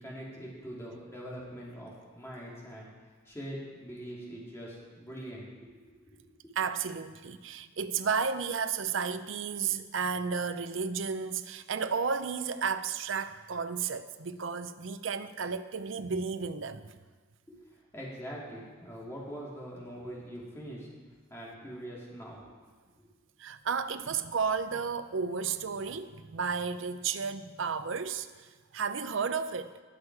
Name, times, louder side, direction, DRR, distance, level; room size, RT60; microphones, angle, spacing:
voice 1, 0.0-2.9 3.2-5.5 6.1-6.3 17.5-20.9 21.3-22.6 23.0-23.1, equal, 15° left, -5 dB, 2.8 m, -43 dB
voice 2, 6.6-17.0 23.4-29.8, right 5 dB, 70° right, 11 dB, 0.6 m, -33 dB
19.5 x 6.5 x 4.8 m, 1.4 s
head